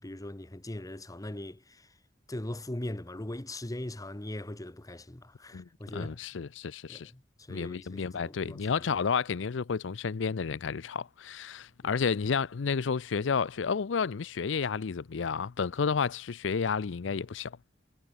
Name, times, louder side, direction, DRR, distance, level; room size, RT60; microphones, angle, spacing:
voice 1, 0.0-1.9 2.3-6.2 6.9-8.9, left 1 dB, 20° left, 1.1 m, -40 dB
voice 2, 5.5-7.1 7.5-17.6, left 5 dB, 80° left, 0.5 m, -31 dB
head